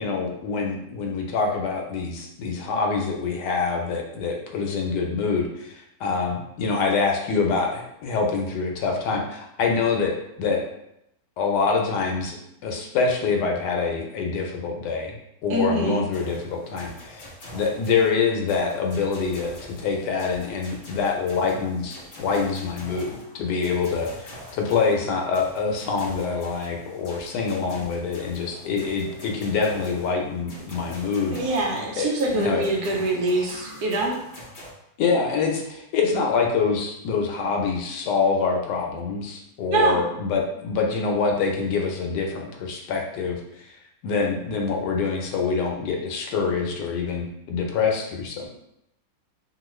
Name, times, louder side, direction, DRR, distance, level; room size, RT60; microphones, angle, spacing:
voice 1, 0.0-10.6 11.4-12.4 12.6-15.2 15.4-17.3 17.5-31.4 32.0-32.6 35.0-43.7 44.0-48.5, left 5 dB, 80° left, 1 dB, 1.2 m, -25 dB
voice 2, 15.5-16.0 31.3-34.2 39.7-40.0, right 2 dB, 70° right, -1 dB, 1.1 m, -24 dB
sound 1, 16.1-34.7, equal, 55° left, 0.5 m, -44 dB
2.9 x 2.4 x 3.0 m, 0.80 s
omnidirectional pair, 1.8 m